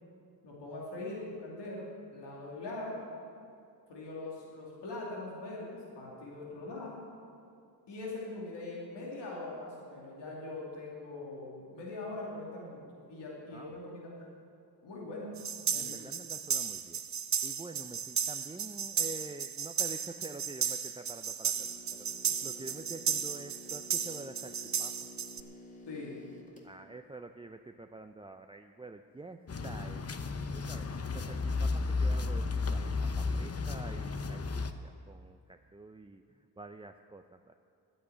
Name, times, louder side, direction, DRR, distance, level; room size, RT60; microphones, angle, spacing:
voice 1, 0.4-3.0 3.9-7.0 7.9-14.2 14.8-15.4 15.7-15.9 25.9-26.2, left 2 dB, 90° left, -4 dB, 2.7 m, -42 dB
sound 1, 15.4-25.4, right 7 dB, 45° right, 0.8 m, -34 dB
voice 2, 15.7-17.0 17.4-25.1 26.6-37.5, right 3 dB, 15° right, 6 dB, 0.5 m, -48 dB
sound 2, 21.5-26.7, left 1 dB, 20° left, 2.2 m, -52 dB
sound 3, 29.5-34.7, left 3 dB, 35° left, 0.8 m, -33 dB
11.0 x 8.7 x 9.2 m, 2.4 s
cardioid pair, 60°, 41 cm